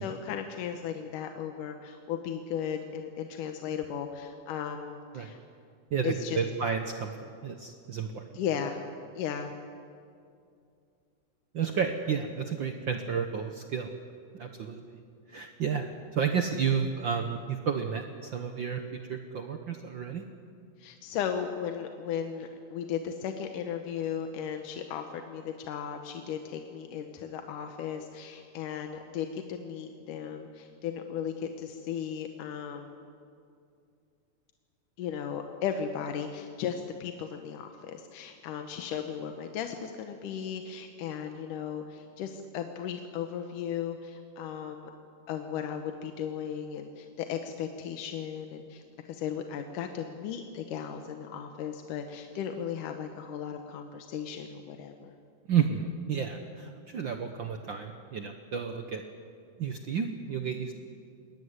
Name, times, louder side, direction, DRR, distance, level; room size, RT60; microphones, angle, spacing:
voice 1, 0.0-5.4 6.0-6.4 8.3-8.8 9.2-9.5 20.8-33.0 35.0-44.9 45.3-55.2, left 8 dB, 85° left, 5 dB, 2.6 m, -36 dB
voice 2, 5.9-8.3 11.5-13.9 14.3-15.0 15.3-20.2 55.5-59.0 59.6-60.8, right 7 dB, 75° right, 5 dB, 1.1 m, -31 dB
21.5 x 16.5 x 9.7 m, 2.4 s
omnidirectional pair, 3.6 m